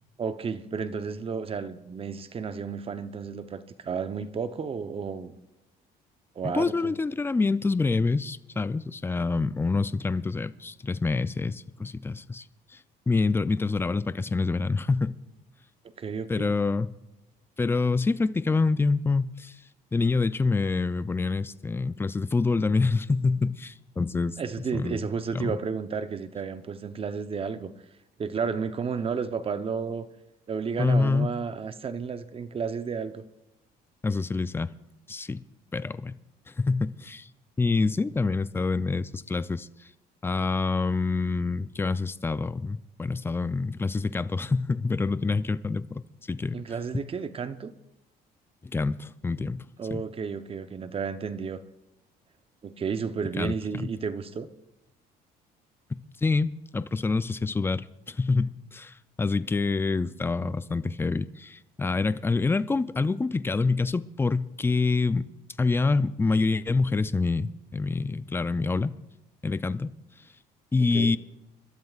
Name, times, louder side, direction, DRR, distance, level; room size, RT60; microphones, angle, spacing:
voice 1, 0.2-5.4 6.4-6.9 16.0-16.5 24.4-27.7 28.2-30.1 30.5-33.2 46.5-47.7 49.8-51.6 52.6-54.5 70.8-71.2, right 6 dB, 35° right, 0.8 m, -32 dB
voice 2, 6.4-12.4 12.7-12.8 13.1-15.2 16.3-16.9 17.6-19.5 19.9-24.4 24.7-25.1 25.3-25.6 30.8-31.3 34.0-34.7 35.1-35.4 35.7-36.2 36.5-37.3 37.6-39.7 40.2-46.6 46.9-47.0 48.6-49.7 49.9-50.0 53.4-53.9 55.9-65.3 65.6-68.9 69.4-69.9 70.7-71.2, left 3 dB, 15° left, 0.4 m, -26 dB
29.0 x 13.0 x 2.5 m
cardioid pair, 110°, 17 cm